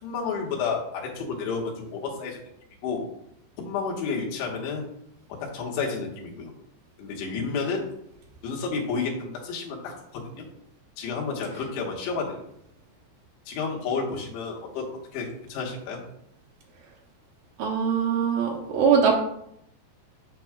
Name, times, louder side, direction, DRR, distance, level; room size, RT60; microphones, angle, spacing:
voice 1, 0.0-2.5 2.8-3.1 3.6-4.9 5.4-6.5 7.0-7.9 8.4-10.4 11.0-12.4 13.5-14.9 15.1-16.0, left 5 dB, 90° left, -2 dB, 3.4 m, -31 dB
voice 2, 17.6-19.2, right 6 dB, 85° right, -1 dB, 1.8 m, -22 dB
8.3 x 5.8 x 2.3 m, 0.74 s
omnidirectional pair, 4.9 m